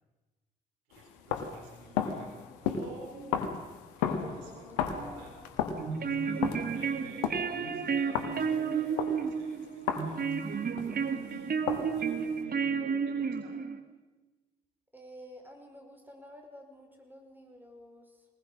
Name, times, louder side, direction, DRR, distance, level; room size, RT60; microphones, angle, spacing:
sound 1, 0.9-11.2 11.7-12.4, left 8 dB, 75° left, 1.6 m, -35 dB
voice 1, 0.9-2.3 2.6-3.7 4.0-5.3 5.9-10.8 11.1-11.5 12.0-13.6, right 2 dB, 80° right, 2 dB, 3.8 m, -50 dB
voice 2, 2.1-3.0 4.8-5.4 6.4-7.3 14.9-18.3, equal, 10° right, 3 dB, 5.4 m, -52 dB
sound 2, 5.7-13.8, right 6 dB, 45° right, 1.7 m, -32 dB
21.5 x 20.0 x 6.3 m, 1.2 s
hypercardioid pair, 45°, 21 cm